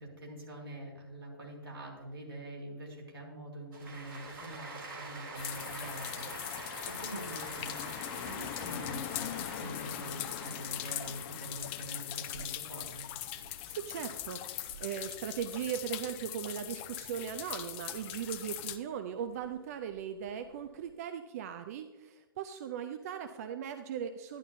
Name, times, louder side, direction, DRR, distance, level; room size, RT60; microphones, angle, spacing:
voice 1, 0.0-13.0, right 1 dB, 75° right, -3 dB, 3.4 m, -45 dB
sound 1, 3.7-16.2 16.6-18.7 19.2-20.8, right 3 dB, 60° right, 3.3 m, -47 dB
sound 2, 5.4-18.8, left 12 dB, 30° left, 0.6 m, -40 dB
voice 2, 13.7-24.4, right 8 dB, 40° right, 9 dB, 0.5 m, -39 dB
11.5 x 11.0 x 2.7 m, 1.3 s
figure-of-eight pair, 115°, 12 cm